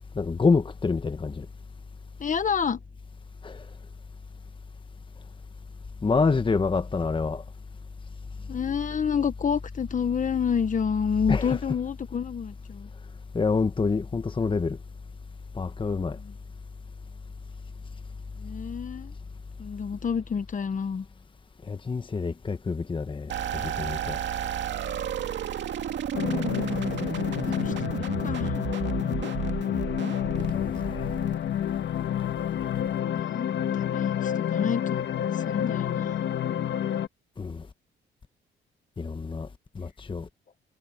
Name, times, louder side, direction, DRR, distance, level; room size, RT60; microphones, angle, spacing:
voice 1, 0.1-1.4 3.4-3.6 6.0-7.4 11.3-11.7 13.3-14.8 15.5-16.2 21.7-23.3 23.6-24.2 30.4-31.1 37.4-37.7 39.0-39.5 39.7-40.3, left 4 dB, 25° left, 1.2 m, -27 dB
voice 2, 2.2-2.8 8.5-12.9 16.2-16.3 18.4-19.1 19.6-21.0 27.5-28.6 29.1-29.2 33.1-35.1 35.3-36.3, left 7 dB, 40° left, 1.3 m, -29 dB
sound 1, 23.3-31.8, right 9 dB, 65° right, 2.3 m, -32 dB
sound 2, 26.1-37.1, left 10 dB, 65° left, 1.5 m, -28 dB
cardioid pair, 90°, 20 cm